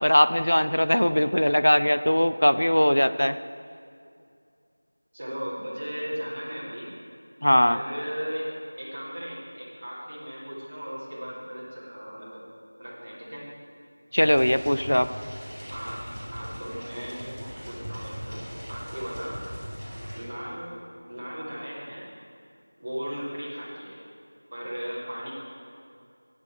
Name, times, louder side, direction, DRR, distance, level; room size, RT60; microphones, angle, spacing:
voice 1, 0.0-3.4 7.4-7.8 14.1-15.1, equal, 75° left, 12 dB, 0.5 m, -20 dB
voice 2, 5.1-6.9 7.6-8.5 8.7-12.4 12.8-13.5 15.7-16.0 16.3-19.4 20.1-22.1 22.8-24.0 24.5-25.3, equal, 25° right, -7 dB, 2.5 m, -36 dB
sound 1, 14.2-20.2, equal, 10° right, 2.0 m, -39 dB
17.0 x 8.4 x 4.8 m, 2.4 s
figure-of-eight pair, 175°, 0 cm